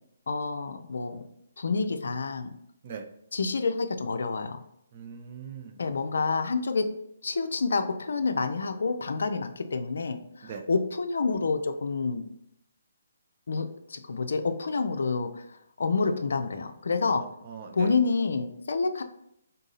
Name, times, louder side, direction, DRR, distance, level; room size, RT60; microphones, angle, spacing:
voice 1, 0.3-1.3 1.6-2.5 3.3-4.6 5.8-6.9 7.2-12.2 13.5-17.2 17.7-19.0, left 4 dB, 70° left, 8 dB, 0.4 m, -28 dB
voice 2, 4.9-5.8 10.5-10.6 17.1-17.9, right 6 dB, 40° right, 5 dB, 0.6 m, -40 dB
3.8 x 2.7 x 3.9 m, 0.75 s
figure-of-eight pair, 145°, 0 cm